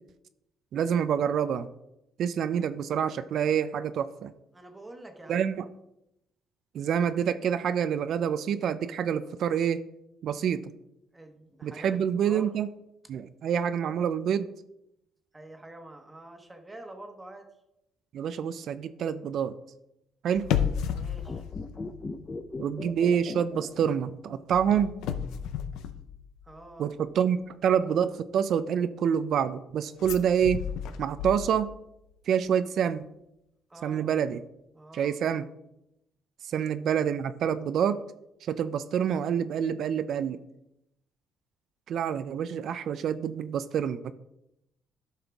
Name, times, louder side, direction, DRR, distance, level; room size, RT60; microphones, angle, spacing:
voice 1, 0.7-1.7 2.2-4.3 5.3-5.7 6.7-9.8 10.2-10.7 11.6-12.7 13.1-14.5 18.1-19.5 20.2-20.5 22.6-24.9 26.8-30.7 31.0-31.7 32.3-33.1 33.8-34.4 34.9-35.5 36.4-38.0 38.4-40.4 41.9-44.1, right 8 dB, 65° right, 12 dB, 0.4 m, -27 dB
voice 2, 4.5-5.4 11.1-12.5 15.3-17.5 20.9-21.4 26.4-26.9 33.7-34.1 34.7-35.2 36.6-36.7, right 1 dB, 15° right, 4 dB, 1.2 m, -47 dB
sound 1, 20.4-22.6 22.9-23.2 24.5-26.7 30.0-31.9 32.2-32.3, left 8 dB, 85° left, 0.6 m, -33 dB
sound 2, 21.2-24.6 24.8-24.9, left 3 dB, 30° left, 0.7 m, -38 dB
11.5 x 5.6 x 3.5 m, 0.85 s
cardioid pair, 95°, 0 cm